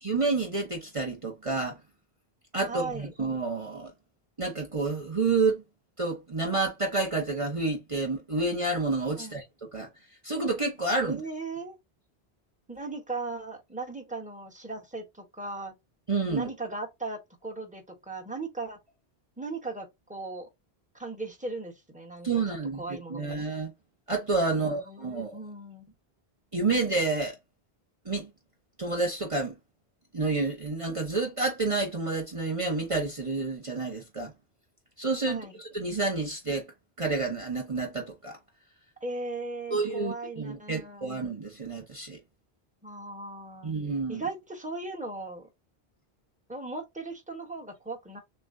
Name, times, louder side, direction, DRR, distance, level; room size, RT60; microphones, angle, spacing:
voice 1, 0.0-1.8 2.5-3.9 4.4-5.6 6.0-9.4 9.7-9.9 10.2-11.2 16.1-16.5 22.2-23.7 24.1-25.4 26.5-27.4 28.0-28.3 28.8-29.5 30.1-34.3 35.0-36.7 37.0-38.4 39.7-42.2 43.6-44.2, right 3 dB, 35° right, 1.0 m, -29 dB
voice 2, 2.6-3.1 9.2-9.4 11.0-11.8 12.7-15.7 16.3-18.8 19.4-20.5 20.9-22.3 22.8-23.4 24.5-25.9 35.3-35.6 39.0-41.2 42.8-43.8 44.1-45.5 46.5-48.2, right 3 dB, 10° right, 1.1 m, -38 dB
6.7 x 2.3 x 2.6 m
omnidirectional pair, 1.1 m